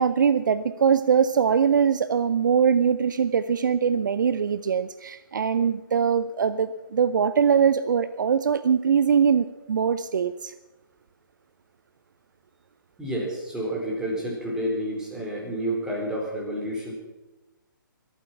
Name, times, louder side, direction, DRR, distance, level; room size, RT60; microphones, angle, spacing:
voice 1, 0.0-10.5, right 7 dB, 60° right, 13 dB, 0.6 m, -22 dB
voice 2, 13.0-16.9, right 1 dB, 5° right, -3 dB, 4.6 m, -29 dB
23.0 x 8.9 x 5.9 m, 1.1 s
figure-of-eight pair, 130°, 11 cm